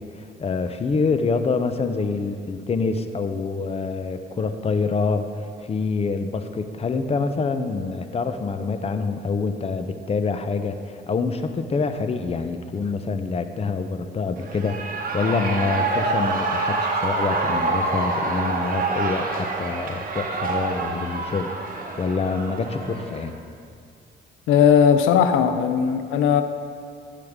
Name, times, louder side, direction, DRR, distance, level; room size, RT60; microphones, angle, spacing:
voice 1, 0.0-21.5 22.0-23.4, left 4 dB, 30° left, 0.7 m, -26 dB
Shout / Cheering, 14.4-23.3, right 3 dB, 45° right, 1.4 m, -26 dB
voice 2, 24.5-26.4, left 7 dB, 90° left, 0.5 m, -17 dB
13.0 x 8.5 x 3.6 m
cardioid pair, 90°, 20 cm